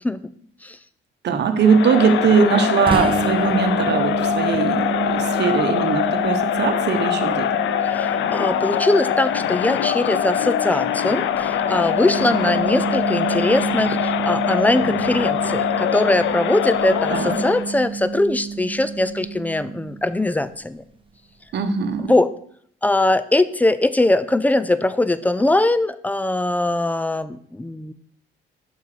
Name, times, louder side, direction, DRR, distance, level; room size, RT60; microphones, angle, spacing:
voice 1, 1.2-7.5 17.1-17.4 21.5-22.1, right 6 dB, 60° right, 8 dB, 0.9 m, -20 dB
Crowd, 1.6-17.7, left 10 dB, 70° left, 0.5 m, -23 dB
sound 1, 2.9-20.4, right 6 dB, 25° right, 0.7 m, -30 dB
voice 2, 7.8-20.8 22.0-22.3 22.8-27.9, left 2 dB, 10° left, 14 dB, 0.4 m, -21 dB
5.7 x 5.5 x 4.8 m, 0.63 s
cardioid pair, 90°, 20 cm